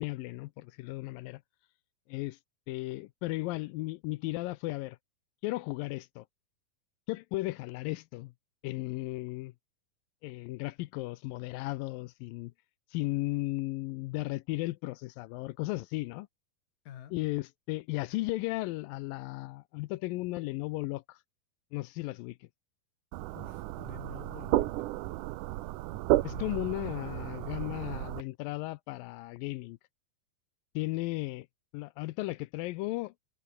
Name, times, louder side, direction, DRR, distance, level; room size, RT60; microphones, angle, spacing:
voice 1, 0.0-1.4 2.1-2.4 2.7-5.0 5.4-6.3 7.1-8.3 8.6-9.5 10.2-12.5 12.9-16.3 17.1-21.2 21.7-22.4 26.2-29.8 30.8-31.5 31.7-33.1, left 19 dB, 80° left, 2.1 m, -35 dB
sound 1, 23.1-28.2, right 17 dB, 80° right, 1.9 m, -32 dB
voice 2, 23.3-24.7 26.2-26.7, left 10 dB, 65° left, 3.3 m, -48 dB
omnidirectional pair, 4.5 m